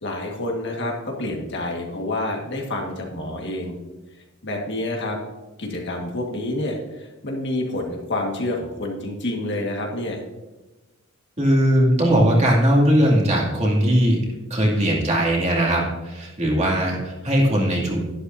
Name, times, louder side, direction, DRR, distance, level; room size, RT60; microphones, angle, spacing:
voice 1, 0.0-3.7 4.4-5.2 5.6-10.2, left 1 dB, 55° left, 1 dB, 1.8 m, -28 dB
voice 2, 11.4-14.2 14.5-18.0, equal, 35° right, -3 dB, 2.5 m, -19 dB
11.5 x 11.5 x 2.7 m, 1.1 s
head